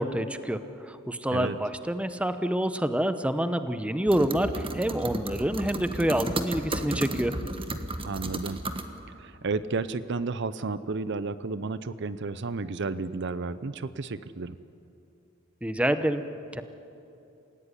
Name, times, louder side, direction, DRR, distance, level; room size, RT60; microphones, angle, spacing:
voice 1, 0.0-7.3 15.6-16.2 16.5-16.6, right 1 dB, 5° right, 10 dB, 0.9 m, -27 dB
sound 1, 4.1-8.9, right 1 dB, 25° right, 1.4 m, -33 dB
voice 2, 8.1-8.6 9.2-14.6, right 3 dB, 60° right, 14 dB, 0.7 m, -32 dB
27.5 x 16.5 x 9.9 m, 2.8 s
head